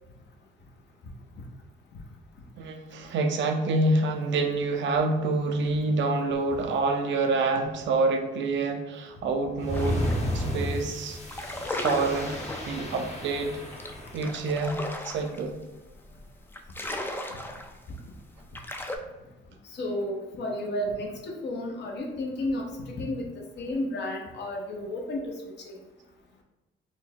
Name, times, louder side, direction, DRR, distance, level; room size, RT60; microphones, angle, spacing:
voice 1, 2.6-10.0 10.3-11.2 11.7-12.4 12.6-13.6 14.1-15.6, right 3 dB, 65° right, 5 dB, 0.5 m, -27 dB
sound 1, 9.6-14.5, left 1 dB, 35° left, 0.8 m, -33 dB
sound 2, 9.7-10.2 10.6-10.8 11.2-19.0, left 1 dB, 10° left, 0.3 m, -36 dB
voice 2, 19.7-23.3 23.6-25.3 25.7-25.8, left 1 dB, 60° left, 1 dB, 0.8 m, -32 dB
4.3 x 2.1 x 2.7 m, 1.0 s
cardioid pair, 90°, 20 cm